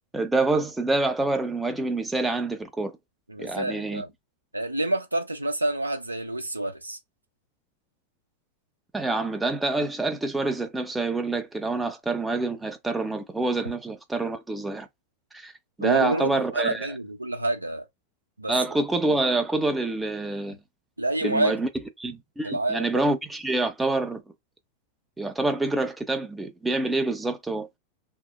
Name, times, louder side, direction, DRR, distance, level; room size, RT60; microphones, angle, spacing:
voice 1, 0.1-3.0 3.4-4.0 8.9-14.9 15.3-15.5 15.8-16.9 18.5-20.6 21.2-21.7 22.0-24.2 25.2-27.7, right 2 dB, 5° right, 0.4 m, -26 dB
voice 2, 3.3-4.1 4.5-7.0 15.8-17.9 18.4-18.5 21.0-21.6 22.4-23.0, right 2 dB, 85° right, 0.5 m, -28 dB
3.0 x 2.0 x 2.2 m
figure-of-eight pair, 90°, 0 cm